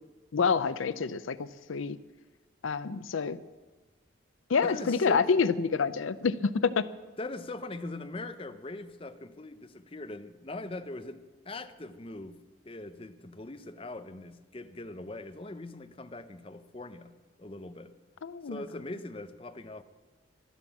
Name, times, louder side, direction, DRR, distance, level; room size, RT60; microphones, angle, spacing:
voice 1, 0.3-2.0 2.6-3.4 4.5-6.9 18.2-18.6, left 5 dB, 85° left, 15 dB, 0.5 m, -28 dB
voice 2, 4.6-5.3 7.2-12.4 12.6-17.1 17.4-17.9 18.5-19.8, left 2 dB, 25° left, 9 dB, 0.7 m, -41 dB
12.5 x 11.5 x 7.3 m, 1.3 s
head